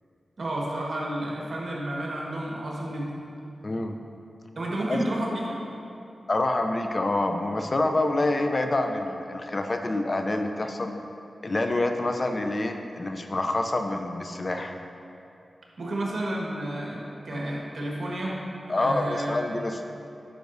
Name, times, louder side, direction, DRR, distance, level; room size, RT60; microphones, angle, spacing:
voice 1, 0.4-3.1 4.5-5.4 15.8-18.4 18.7-19.4, right 1 dB, 65° right, -3 dB, 1.4 m, -31 dB
voice 2, 3.6-4.0 4.9-5.0 6.3-11.0 11.4-14.8 17.3-17.5 18.7-19.8, left 2 dB, 45° left, 5 dB, 0.5 m, -27 dB
10.0 x 5.9 x 2.7 m, 2.7 s
cardioid pair, 55°, 0 cm